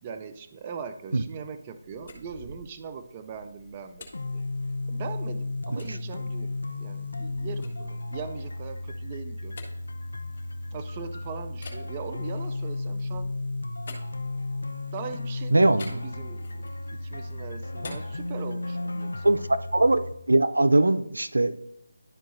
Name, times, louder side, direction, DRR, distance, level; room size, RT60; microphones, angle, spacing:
voice 1, 0.0-4.1 4.3-4.4 4.9-9.6 10.7-13.3 14.9-19.4, right 6 dB, 25° right, 8 dB, 0.4 m, -40 dB
sound 1, 1.8-5.2 5.8-6.0 6.5-11.0 11.5-14.8 15.8-16.9 17.2-19.0, left 2 dB, 45° left, 1.8 m, -48 dB
sound 2, 4.1-20.1, left 2 dB, 85° left, 0.5 m, -34 dB
voice 2, 15.5-15.8 19.2-19.4 19.7-21.6, right 2 dB, 90° right, 12 dB, 0.4 m, -21 dB
11.5 x 4.6 x 2.6 m, 0.80 s
figure-of-eight pair, 160°, 0 cm